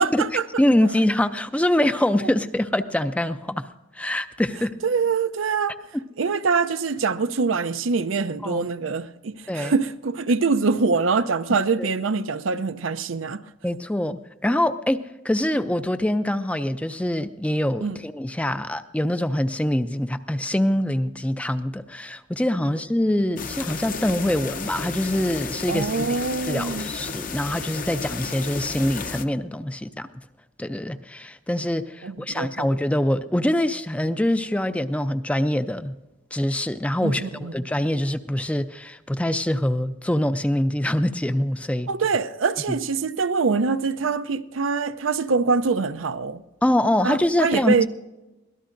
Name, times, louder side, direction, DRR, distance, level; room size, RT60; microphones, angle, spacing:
voice 1, 0.0-0.4 4.8-5.8 6.2-13.4 17.8-18.0 25.7-26.9 32.0-32.7 37.0-37.5 41.9-46.4 47.0-47.9, right 4 dB, 85° right, 0.6 m, -24 dB
voice 2, 0.6-3.6 3.9-4.7 8.4-8.6 9.5-9.7 11.8-11.9 13.6-15.0 15.2-26.1 26.5-30.1 30.6-36.0 36.3-41.9 42.7-42.8 46.6-47.9, left 1 dB, 5° left, 0.4 m, -24 dB
sound 1, 23.4-29.2, left 5 dB, 45° left, 0.7 m, -33 dB
24.0 x 17.5 x 2.6 m
head